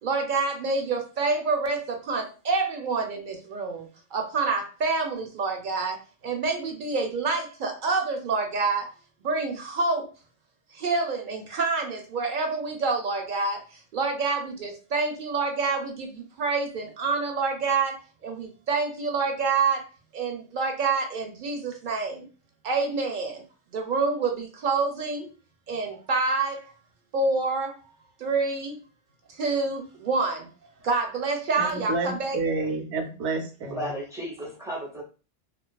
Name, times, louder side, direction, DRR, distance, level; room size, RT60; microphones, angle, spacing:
voice 1, 0.0-8.9 9.2-10.1 10.7-19.9 20.1-22.3 22.6-23.4 23.7-25.3 25.7-26.7 27.1-27.9 28.2-28.8 29.3-30.5 30.8-32.4, right 4 dB, 60° right, 0.6 m, -27 dB
voice 2, 31.6-33.8, right 3 dB, 85° right, 0.9 m, -29 dB
voice 3, 33.6-35.0, equal, 5° right, 0.3 m, -34 dB
2.4 x 2.3 x 2.2 m
omnidirectional pair, 1.1 m